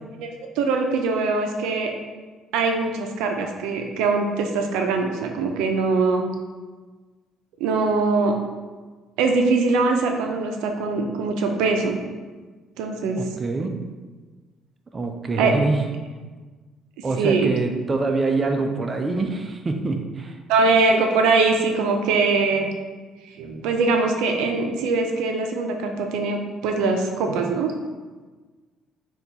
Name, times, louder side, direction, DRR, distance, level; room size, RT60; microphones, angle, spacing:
voice 1, 0.2-1.9 2.5-6.3 7.6-8.3 9.2-12.0 12.8-13.2 15.4-15.5 17.2-17.5 20.5-22.7 23.4-27.7, right 4 dB, 90° right, 3 dB, 0.4 m, -22 dB
voice 2, 13.2-13.7 14.9-15.8 17.0-20.4, right 3 dB, 30° right, 4 dB, 0.4 m, -25 dB
4.4 x 2.3 x 3.9 m, 1.4 s
cardioid pair, 95°, 0 cm